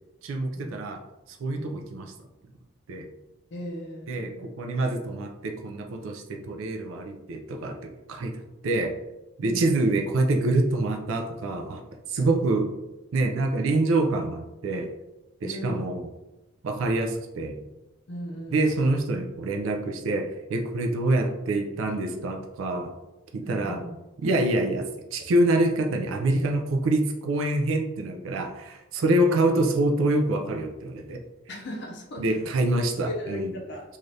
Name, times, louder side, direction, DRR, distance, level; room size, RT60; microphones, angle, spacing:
voice 1, 0.2-1.0 1.3-2.1 2.9-3.1 4.1-8.9 9.4-11.8 12.1-12.7 13.1-14.9 15.4-16.1 16.6-17.6 18.5-22.9 23.3-23.8 24.2-24.8 25.1-31.2 32.2-33.5, right 2 dB, 90° right, 3 dB, 0.4 m, -26 dB
voice 2, 1.6-1.9 3.5-4.5 9.4-9.9 12.2-12.4 15.4-15.9 18.1-18.7 23.4-23.9 31.5-32.4 33.1-33.8, left 1 dB, 55° left, -1 dB, 0.5 m, -37 dB
3.2 x 2.4 x 2.6 m, 1.0 s
head